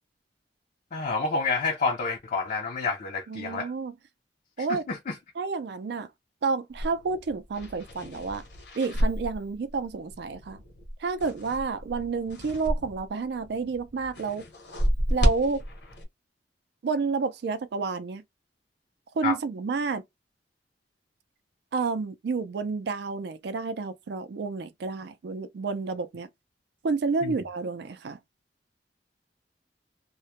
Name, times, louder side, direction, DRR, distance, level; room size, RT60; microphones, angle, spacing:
voice 1, 0.9-3.7 4.6-5.2 19.2-19.4 27.2-27.4, left 4 dB, 45° left, 0.4 m, -29 dB
voice 2, 3.3-3.9 4.6-4.8 5.4-6.1 6.4-8.4 8.8-10.6 11.0-14.4 15.1-15.6 16.8-18.2 19.2-20.0 21.7-26.3 26.8-28.2, right 4 dB, 65° right, 0.4 m, -30 dB
sound 1, 6.7-13.1 13.4-16.0, equal, 70° left, 0.9 m, -31 dB
2.2 x 2.0 x 2.8 m
head